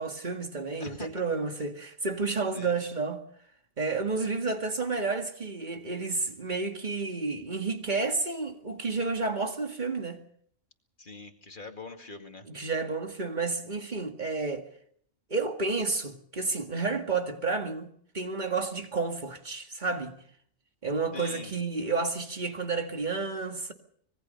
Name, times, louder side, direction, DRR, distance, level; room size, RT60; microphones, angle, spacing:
voice 1, 0.0-3.2 3.8-10.2 12.5-14.6 15.3-17.9 18.1-20.2 20.8-23.7, right 4 dB, 35° right, 2.2 m, -31 dB
voice 2, 0.8-1.3 2.5-2.8 11.0-12.5 21.1-21.5, left 3 dB, 40° left, 2.3 m, -43 dB
25.5 x 20.5 x 5.6 m
omnidirectional pair, 1.3 m